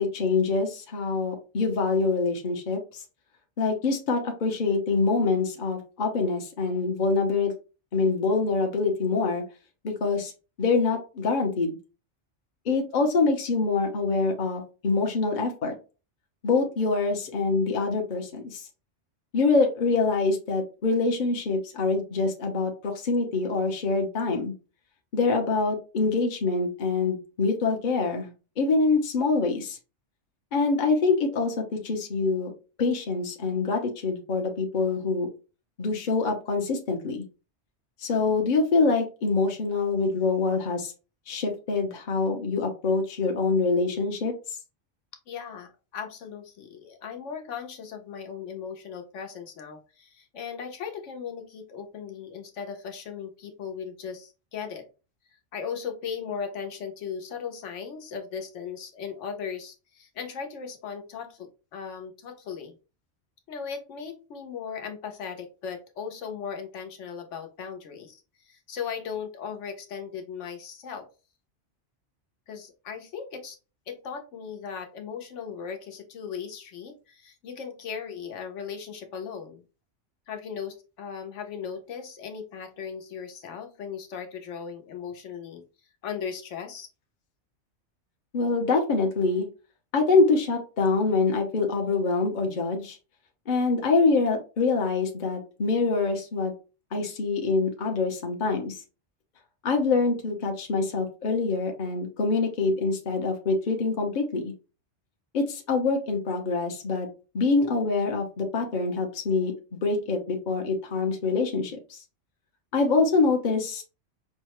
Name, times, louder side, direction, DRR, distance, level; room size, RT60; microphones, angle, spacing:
voice 1, 0.0-3.0 3.6-7.5 7.9-9.4 9.8-10.3 10.6-11.8 12.7-15.7 16.4-18.7 19.3-24.5 25.1-28.3 28.6-29.8 30.5-32.5 32.8-35.3 35.8-37.2 38.0-40.9 41.3-44.3 88.3-89.5 89.9-93.0 93.5-96.5 96.9-98.8 99.6-104.5 105.3-107.1 107.3-112.0 112.7-113.8, left 4 dB, 45° left, 2 dB, 0.8 m, -25 dB
voice 2, 45.3-54.9 55.5-62.8 63.5-71.1 72.5-73.6 73.9-79.6 80.3-85.6 86.0-86.9, left 7 dB, 80° left, 4 dB, 1.1 m, -37 dB
5.5 x 2.1 x 2.9 m, 0.33 s
omnidirectional pair, 1.2 m